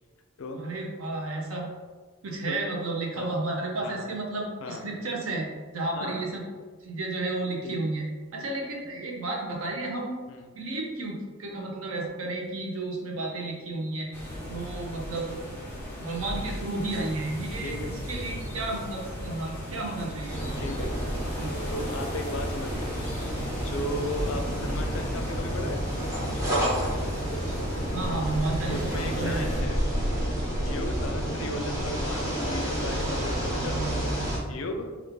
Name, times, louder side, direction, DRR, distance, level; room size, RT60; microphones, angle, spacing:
voice 1, 0.5-1.7 2.2-5.5 5.7-6.4 6.8-8.1 8.3-10.1 10.5-14.1 14.5-15.4 16.0-20.4 21.4-21.5 27.7-29.5, right 2 dB, 65° right, -1 dB, 0.7 m, -32 dB
sound 1, 14.1-29.6, equal, 10° left, 1.3 m, -36 dB
voice 2, 17.6-18.0 20.6-20.9 21.7-23.0 23.5-25.8 28.7-29.8 30.6-34.0 34.5-34.9, left 2 dB, 60° left, 5 dB, 0.4 m, -36 dB
sound 2, 20.3-34.4, right 1 dB, 15° right, 0.7 m, -30 dB
3.1 x 2.4 x 3.5 m, 1.5 s
head